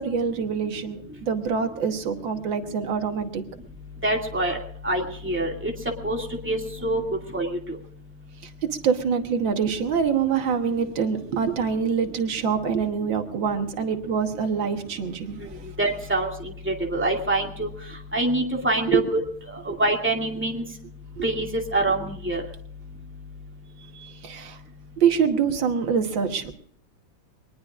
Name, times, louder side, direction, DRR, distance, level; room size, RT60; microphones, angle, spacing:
voice 1, 0.0-3.4 8.4-15.6 18.9-19.1 19.7-19.8 21.2-21.3 23.9-24.6 25.0-26.5, right 6 dB, 80° right, 6 dB, 2.0 m, -25 dB
voice 2, 4.0-4.6 4.8-5.7 6.0-6.2 6.4-7.0 7.3-7.6 15.8-16.3 16.7-17.7 18.1-19.0 19.6-20.6 21.2-21.5 21.7-22.4, right 2 dB, 5° right, 1 dB, 2.2 m, -25 dB
23.0 x 20.0 x 2.5 m, 0.62 s
omnidirectional pair, 2.1 m